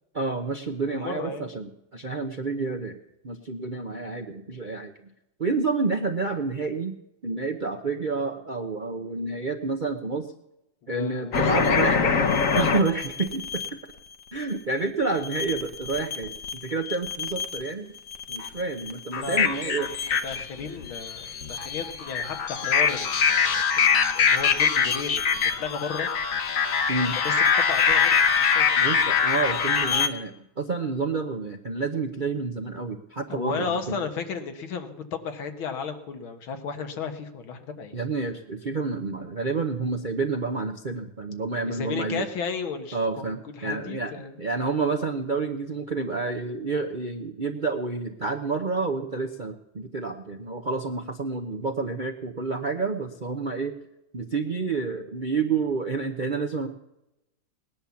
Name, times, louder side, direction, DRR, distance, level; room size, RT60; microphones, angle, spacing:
voice 1, 0.1-3.0 3.2-4.9 5.4-7.0 7.2-10.3 10.9-12.1 12.5-13.6 14.3-17.9 18.3-19.9 26.9-27.1 28.8-34.0 37.9-42.3 42.9-53.7 54.1-56.7, right 4 dB, 50° right, 5 dB, 0.6 m, -29 dB
voice 2, 0.9-1.5 10.9-11.9 19.2-26.1 27.2-28.8 33.3-38.0 41.6-43.3 43.5-44.4, left 5 dB, 85° left, 7 dB, 2.2 m, -34 dB
sound 1, 11.3-13.7 15.2-16.5 16.9-17.7 18.1-30.1, left 6 dB, 50° left, 1.2 m, -24 dB
19.0 x 10.0 x 7.1 m, 0.88 s
omnidirectional pair, 2.2 m